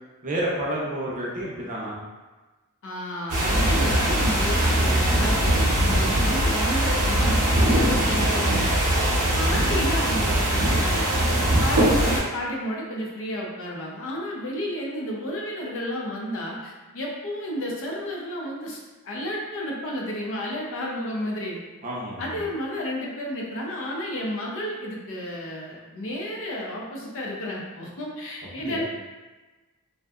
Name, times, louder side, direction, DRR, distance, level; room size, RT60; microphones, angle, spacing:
voice 1, 0.2-1.9 21.8-22.4 28.6-28.8, right 1 dB, 35° right, -5 dB, 0.6 m, -30 dB
voice 2, 2.8-8.7 9.3-11.1 11.6-18.8 19.0-21.6 22.2-28.8, equal, 60° left, -2 dB, 0.5 m, -32 dB
sound 1, 3.3-12.2, right 1 dB, 75° right, 0.7 m, -21 dB
2.6 x 2.1 x 2.3 m, 1.2 s
head